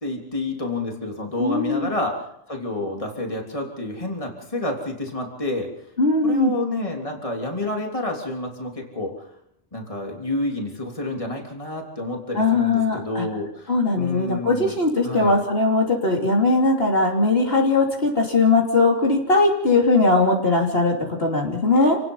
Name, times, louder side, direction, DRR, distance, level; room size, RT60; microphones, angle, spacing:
voice 1, 0.0-5.7 6.2-9.3 9.7-14.7 15.0-15.4, left 2 dB, 25° left, 1 dB, 3.4 m, -29 dB
voice 2, 1.4-1.9 6.0-6.5 12.3-13.3 13.7-22.0, left 3 dB, 45° left, -1 dB, 3.3 m, -20 dB
28.5 x 19.0 x 5.6 m, 0.75 s
omnidirectional pair, 1.4 m